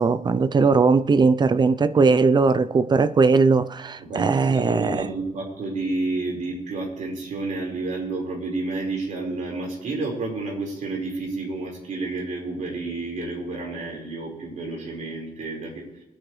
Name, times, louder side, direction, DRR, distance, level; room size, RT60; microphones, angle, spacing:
voice 1, 0.0-5.0, right 4 dB, 30° right, 0.6 m, -19 dB
voice 2, 4.0-16.0, right 3 dB, 60° right, 5.0 m, -30 dB
23.5 x 9.8 x 3.3 m
cardioid pair, 110°, 14 cm